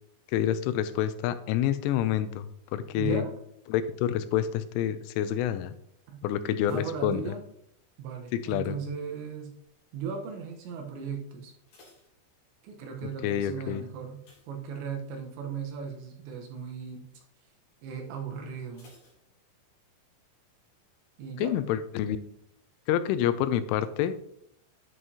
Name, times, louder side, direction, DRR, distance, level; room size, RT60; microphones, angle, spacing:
voice 1, 0.3-3.2 3.7-5.7 6.2-7.3 8.3-8.8 13.2-13.8 21.4-22.2 22.9-24.2, left 10 dB, 85° left, 13 dB, 3.0 m, -28 dB
voice 2, 2.9-3.4 6.1-6.2 6.7-7.4 8.0-9.5 9.9-11.5 12.6-14.2 14.5-17.0 17.8-18.9 21.2-21.5, right 6 dB, 75° right, 2 dB, 3.1 m, -37 dB
sound 1, 6.6-8.1 8.3-8.8 9.4-9.8 10.1-10.2 10.6-10.7 11.3-12.9 14.2-15.3 15.7-15.9 16.3-16.4 18.7-19.9 20.2-20.3, left 2 dB, 50° left, 4.0 m, -61 dB
9.9 x 7.7 x 2.8 m, 0.70 s
omnidirectional pair, 5.6 m